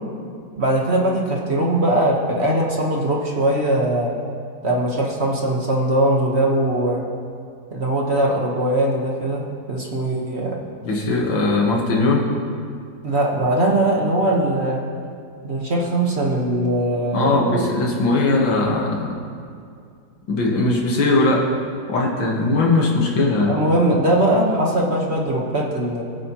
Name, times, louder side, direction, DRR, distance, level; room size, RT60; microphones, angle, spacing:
voice 1, 0.6-4.1 4.6-7.0 7.7-10.6 13.0-14.8 15.4-17.6 23.5-26.1, right 1 dB, 40° right, -2 dB, 1.5 m, -20 dB
voice 2, 10.8-12.3 17.1-19.2 20.3-21.5 21.9-23.5, left 2 dB, 85° left, -1 dB, 2.3 m, -19 dB
20.5 x 8.3 x 3.1 m, 2.3 s
omnidirectional pair, 2.0 m